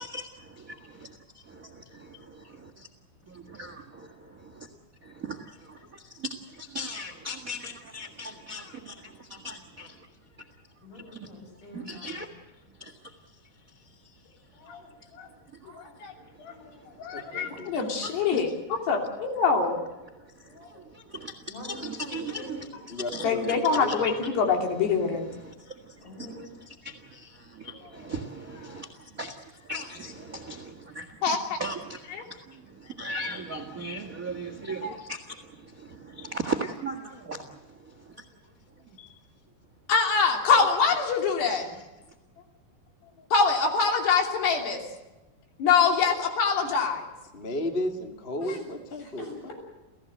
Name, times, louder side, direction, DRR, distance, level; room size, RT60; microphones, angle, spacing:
voice 1, 0.0-2.9 3.3-4.7 5.0-10.1 10.9-11.3 11.7-12.3 12.8-13.4 13.7-14.2 15.6-17.6 18.0-18.4 20.1-38.2 40.5-40.7 41.4-41.8, right 2 dB, 55° right, 7 dB, 0.9 m, -39 dB
voice 2, 10.8-12.3 14.5-14.9 15.1-15.3 15.6-15.9 16.5-16.8 17.1-17.4 17.8-17.9 20.4-20.8 21.5-22.7 26.0-26.5 27.7-28.1 28.4-28.9 30.3-30.4 48.4-48.6 49.0-49.5, left 1 dB, 60° left, 2 dB, 9.1 m, -45 dB
voice 3, 15.7-16.1 16.4-16.5 17.0-18.5 18.9-19.8 23.2-25.3 31.2-31.4 32.1-32.2 33.1-33.3 34.8-34.9 39.9-41.7 43.3-44.8 45.6-47.1, left 5 dB, 75° left, 3 dB, 5.1 m, -24 dB
voice 4, 17.1-17.7 22.9-24.1 39.0-39.2 47.3-49.5, left 1 dB, 25° left, 5 dB, 1.3 m, -34 dB
29.5 x 16.0 x 7.9 m, 1.1 s
omnidirectional pair, 4.8 m